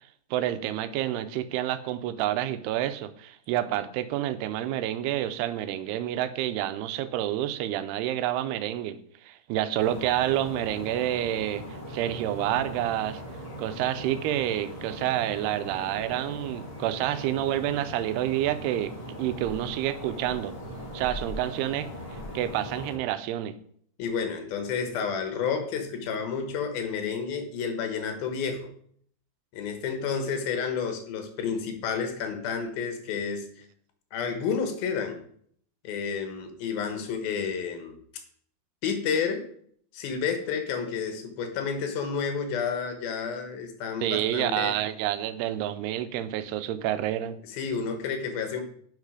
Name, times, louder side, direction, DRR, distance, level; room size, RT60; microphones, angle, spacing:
voice 1, 0.3-9.0 9.2-13.2 13.6-18.9 19.2-20.5 20.9-21.9 22.3-23.5 44.0-47.4, right 12 dB, 90° right, 12 dB, 2.7 m, -28 dB
sound 1, 9.8-22.9, equal, 25° left, 4.5 m, -40 dB
voice 2, 24.0-28.7 29.5-33.6 34.1-35.2 35.8-38.0 38.8-39.4 39.9-44.8 47.5-48.6, left 6 dB, 70° left, 6 dB, 3.0 m, -30 dB
10.5 x 5.8 x 4.9 m, 0.62 s
omnidirectional pair, 4.5 m